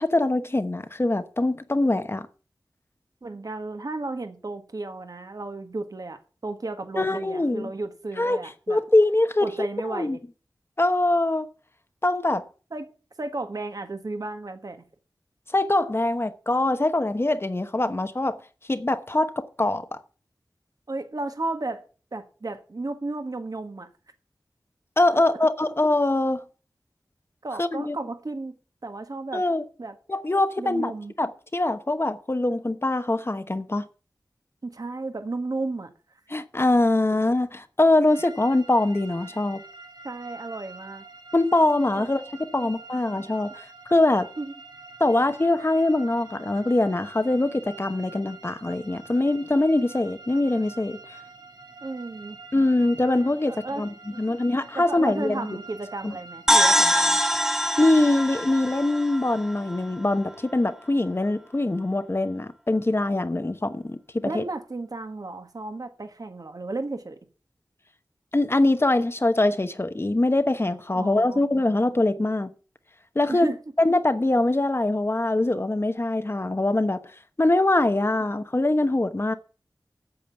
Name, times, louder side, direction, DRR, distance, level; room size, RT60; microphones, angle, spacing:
voice 1, 0.0-2.3 7.0-7.7 8.2-8.4 8.7-10.2 10.8-11.5 12.0-12.4 15.5-18.4 18.7-20.0 25.0-26.4 27.6-28.0 29.3-29.6 30.1-30.9 31.2-33.8 36.3-39.6 41.3-44.3 45.0-51.0 52.5-53.9 54.2-55.5 56.0-56.1 57.8-64.4 68.3-72.5 73.1-73.5 73.8-77.0 77.4-79.3, left 2 dB, 35° left, 1.0 m, -23 dB
voice 2, 3.2-8.8 9.4-10.2 12.7-12.9 13.2-14.8 20.9-21.8 22.1-23.9 25.1-25.7 27.4-28.5 28.8-29.4 29.8-29.9 30.6-31.1 34.6-35.9 40.0-41.0 42.0-42.1 44.4-44.5 51.8-52.4 53.5-54.2 54.7-57.2 64.2-67.2 70.9-71.4 73.2-73.6, right 2 dB, 55° right, 1.5 m, -34 dB
sound 1, 38.1-57.9, right 3 dB, 85° right, 2.7 m, -46 dB
sound 2, 56.5-60.1, equal, 5° right, 1.2 m, -23 dB
8.6 x 7.5 x 7.0 m
wide cardioid pair, 55°, 7 cm